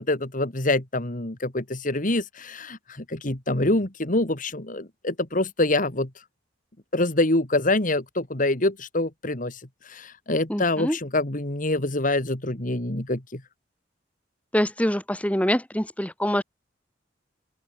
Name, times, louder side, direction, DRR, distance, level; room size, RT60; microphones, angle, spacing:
voice 1, 0.0-6.1 6.9-13.4, left 2 dB, 45° left, 2.6 m, -25 dB
voice 2, 10.5-11.0 14.5-16.4, equal, 10° left, 4.6 m, -25 dB
open air
head